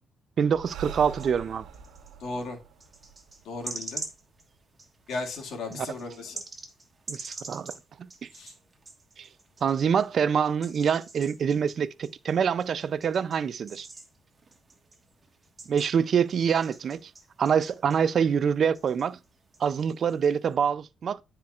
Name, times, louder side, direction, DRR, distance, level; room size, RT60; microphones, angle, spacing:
voice 1, 0.4-1.7 5.7-5.9 7.1-7.7 8.0-8.3 9.2-9.3 9.6-13.9 15.7-17.1 17.4-19.2 19.6-21.2, right 7 dB, 55° right, 0.4 m, -25 dB
Breathing, 0.5-4.1, right 7 dB, 90° right, 1.1 m, -44 dB
sound 1, 1.2-2.2 2.8-10.1 10.5-18.5 18.7-20.6, right 3 dB, 30° right, 1.4 m, -45 dB
voice 2, 2.2-2.6 3.4-4.0 5.1-6.4 8.3-8.5, left 3 dB, 75° left, 1.9 m, -35 dB
10.5 x 4.4 x 2.4 m
cardioid pair, 90°, 0 cm